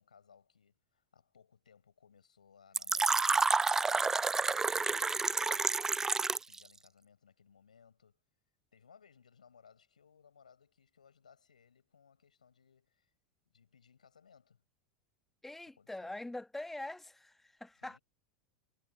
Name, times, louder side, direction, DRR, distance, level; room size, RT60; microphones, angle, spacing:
voice 1, 0.0-8.2 8.7-13.1 13.4-14.6 15.6-16.2 17.8-18.0, left 6 dB, 75° left, 6.8 m, -63 dB
Fill (with liquid), 2.7-6.6, right 4 dB, 10° right, 0.4 m, -29 dB
voice 2, 15.4-18.0, left 2 dB, 5° left, 1.4 m, -44 dB
figure-of-eight pair, 85°, 4 cm